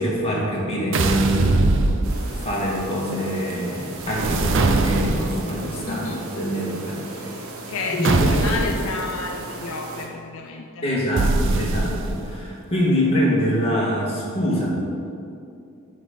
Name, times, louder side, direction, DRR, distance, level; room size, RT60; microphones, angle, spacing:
voice 1, 0.0-1.5 2.3-6.0 6.3-7.4 7.9-8.3 10.8-14.7, equal, 30° left, -5 dB, 1.8 m, -24 dB
sound 1, 0.9-2.5 4.0-5.5 8.0-8.9 11.2-12.3, right 2 dB, 60° right, 0.5 m, -21 dB
sound 2, 2.0-10.1, right 2 dB, 90° right, 1.1 m, -36 dB
voice 2, 5.8-6.2 7.7-10.9, left 4 dB, 65° left, 2 dB, 0.5 m, -31 dB
9.1 x 3.9 x 5.2 m, 2.5 s
head